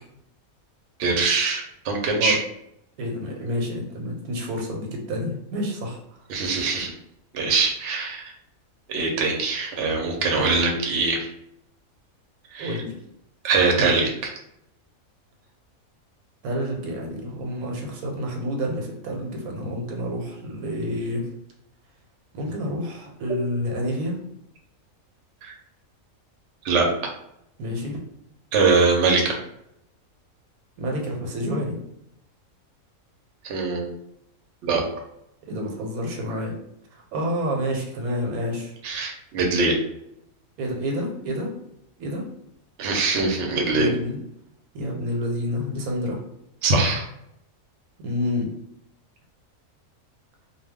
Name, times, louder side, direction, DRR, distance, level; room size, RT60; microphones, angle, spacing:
voice 1, 1.0-2.4 6.3-6.9 7.3-8.2 8.9-11.2 12.5-12.8 13.4-14.3 25.4-25.5 26.6-26.9 28.5-29.4 33.4-33.9 34.6-34.8 38.8-39.7 42.8-43.9 46.6-47.0, right 3 dB, 60° right, 1 dB, 0.8 m, -22 dB
voice 2, 3.0-6.2 12.6-12.9 16.4-21.3 22.3-24.2 27.6-28.0 30.8-31.8 35.5-36.6 36.9-38.8 40.6-41.5 42.0-42.2 43.7-44.2 44.7-46.2 48.0-48.5, equal, 90° right, 1 dB, 1.1 m, -29 dB
2.3 x 2.2 x 3.4 m, 0.78 s
omnidirectional pair, 1.5 m